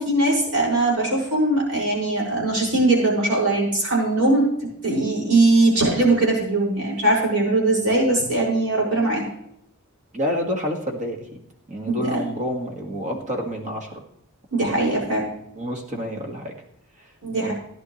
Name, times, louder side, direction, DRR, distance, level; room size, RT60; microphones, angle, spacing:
voice 1, 0.0-4.5 4.8-9.2 11.9-12.2 14.5-15.3 17.2-17.5, right 2 dB, 75° right, -4 dB, 6.0 m, -20 dB
voice 2, 10.1-11.4 11.7-13.9 15.6-16.5 17.4-17.5, equal, 35° right, 2 dB, 1.9 m, -28 dB
17.0 x 10.5 x 3.2 m, 0.76 s
head